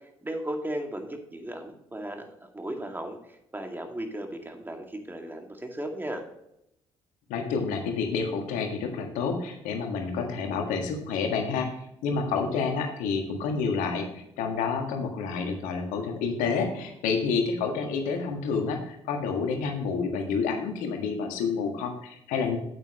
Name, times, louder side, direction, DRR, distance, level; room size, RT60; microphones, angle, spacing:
voice 1, 0.2-6.2, right 1 dB, 15° right, 4 dB, 2.2 m, -36 dB
voice 2, 7.3-11.7 12.0-22.6, left 5 dB, 70° left, 4 dB, 1.7 m, -29 dB
8.9 x 8.7 x 3.0 m, 0.79 s
hypercardioid pair, 45°, 14 cm